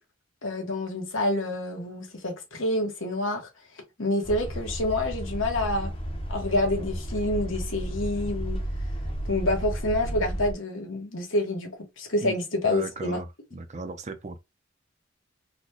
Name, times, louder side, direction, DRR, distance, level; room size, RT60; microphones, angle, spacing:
voice 1, 0.4-3.5 4.0-5.9 6.3-8.6 9.3-13.2, left 1 dB, 85° left, 1.3 m, -28 dB
sound 1, 4.2-10.5, right 1 dB, 30° left, 0.8 m, -32 dB
voice 2, 12.6-14.4, right 3 dB, 35° right, 0.6 m, -36 dB
4.0 x 2.2 x 3.0 m
head